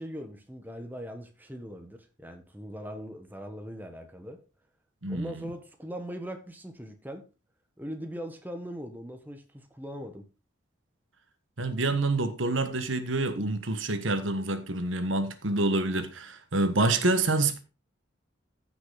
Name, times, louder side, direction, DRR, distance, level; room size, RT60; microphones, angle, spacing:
voice 1, 0.0-4.4 5.1-7.2 7.8-10.3, equal, 10° right, 1.3 m, -40 dB
voice 2, 5.0-5.4 11.6-17.6, right 2 dB, 85° right, 1.4 m, -27 dB
14.5 x 6.1 x 4.0 m
head